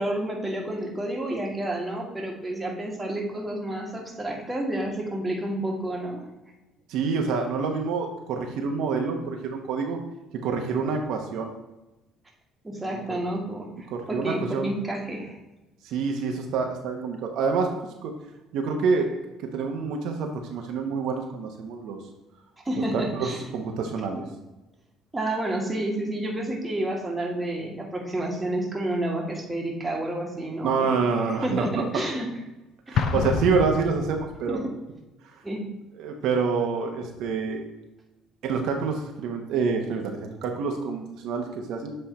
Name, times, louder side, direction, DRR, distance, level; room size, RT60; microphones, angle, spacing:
voice 1, 0.0-6.2 12.6-15.4 22.6-23.5 25.1-30.9 31.3-32.3 32.9-33.1 34.5-34.7 35.4-35.6, right 1 dB, 10° right, 0 dB, 1.5 m, -30 dB
voice 2, 6.9-10.0 10.3-11.5 12.8-13.0 13.9-14.7 15.8-17.7 18.0-18.1 18.5-19.1 19.4-22.0 22.9-24.2 30.6-31.9 32.9-34.6 36.0-37.6 38.4-41.9, right 5 dB, 70° right, 3 dB, 0.9 m, -27 dB
Explosion, 33.0-34.6, left 6 dB, 55° left, 0.5 m, -28 dB
7.8 x 3.3 x 4.2 m, 1.0 s
cardioid pair, 105°, 0 cm